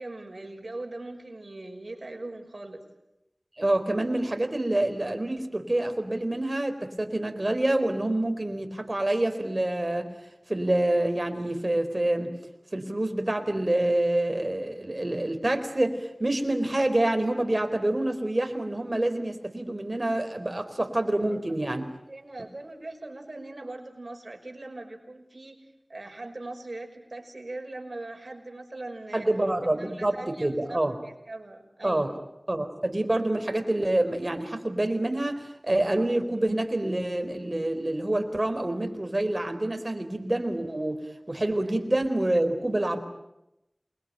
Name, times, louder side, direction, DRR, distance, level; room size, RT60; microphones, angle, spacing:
voice 1, 0.0-2.8 21.7-21.8 22.1-25.6 25.9-29.3 29.8-30.8 31.0-32.1, right 2 dB, 65° right, 3 dB, 5.8 m, -40 dB
voice 2, 3.6-10.1 10.5-12.3 12.7-21.8 22.4-22.5 29.1-31.0 31.8-32.1 32.5-43.0, right 1 dB, 40° right, 6 dB, 4.3 m, -27 dB
28.0 x 22.5 x 9.1 m, 0.87 s
wide cardioid pair, 55°, 0 cm